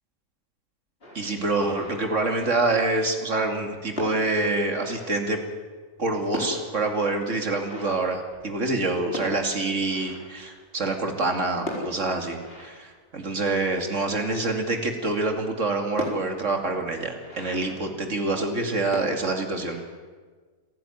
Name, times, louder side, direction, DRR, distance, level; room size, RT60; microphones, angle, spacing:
sound 1, 1.0-2.8 3.6-3.7 4.0-5.7 6.0-6.1 6.3-11.1 11.6-14.2 14.8-14.9 15.2-15.3 16.0-18.6 18.9-19.8, left 1 dB, 40° left, 4.7 m, -39 dB
voice 1, 1.1-5.4 6.0-19.8, right 2 dB, 50° right, 4 dB, 2.8 m, -26 dB
28.0 x 11.0 x 9.4 m, 1.5 s
omnidirectional pair, 1.6 m